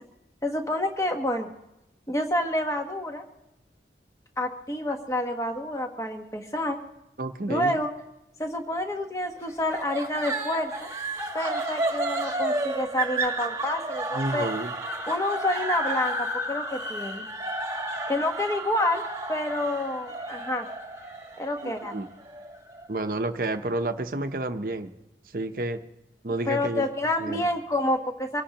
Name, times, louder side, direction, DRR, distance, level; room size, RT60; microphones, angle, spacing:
voice 1, 0.4-1.5 2.1-3.2 4.4-6.8 7.5-7.9 8.4-10.9 11.3-14.5 15.1-17.3 18.1-19.0 19.3-20.7 21.4-22.0 26.5-28.4, left 1 dB, 15° left, 5 dB, 1.1 m, -28 dB
voice 2, 7.2-7.8 14.1-14.7 21.6-22.1 22.9-24.9 25.3-25.8 26.2-26.9 27.2-27.4, right 2 dB, 50° right, 8 dB, 0.8 m, -30 dB
sound 1, 9.7-22.9, right 2 dB, 15° right, 1.4 m, -32 dB
25.0 x 17.0 x 3.0 m, 0.91 s
head